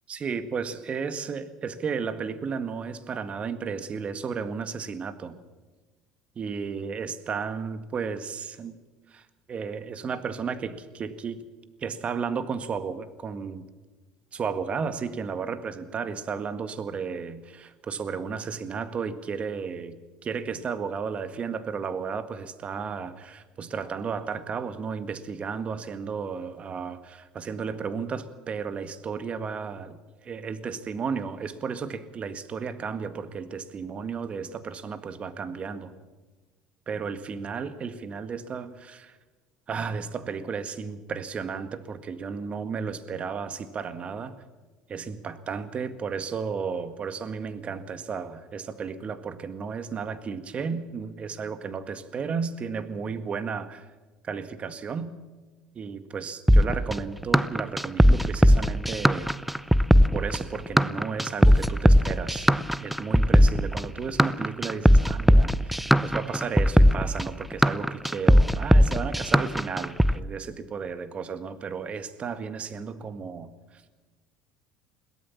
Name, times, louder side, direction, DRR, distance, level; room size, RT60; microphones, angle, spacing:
voice 1, 0.1-5.4 6.4-8.8 9.1-11.4 11.8-13.6 14.3-20.0 20.2-30.0 30.2-35.9 36.9-39.2 39.7-44.4 44.9-53.9 54.2-55.1 55.7-59.3 60.1-62.5 62.8-73.8, right 6 dB, 40° right, 11 dB, 1.9 m, -33 dB
sound 1, 56.5-70.1, equal, 5° right, 0.7 m, -19 dB
22.0 x 17.5 x 7.3 m, 1.3 s
hypercardioid pair, 75°, 3 cm